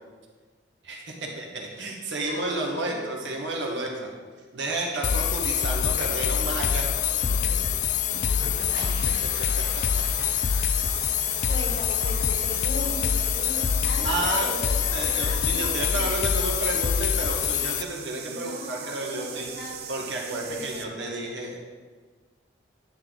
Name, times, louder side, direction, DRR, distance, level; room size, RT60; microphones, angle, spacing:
voice 1, 0.8-4.1 4.5-6.9 7.3-7.4 8.7-8.8 9.5-9.8 10.6-10.9 14.0-14.5 14.9-19.4 19.9-21.6, right 2 dB, 75° right, -1 dB, 1.6 m, -31 dB
voice 2, 2.3-3.2 8.4-8.9 10.9-16.1 18.2-21.2, left 1 dB, 85° left, -4 dB, 2.3 m, -38 dB
sound 1, 5.0-17.8, left 8 dB, 40° left, 0.3 m, -25 dB
sound 2, 5.8-9.1 11.2-14.4, left 1 dB, 60° left, 2.0 m, -51 dB
sound 3, 8.0-20.8, right 7 dB, 55° right, 0.6 m, -40 dB
10.5 x 6.8 x 3.9 m, 1.4 s
head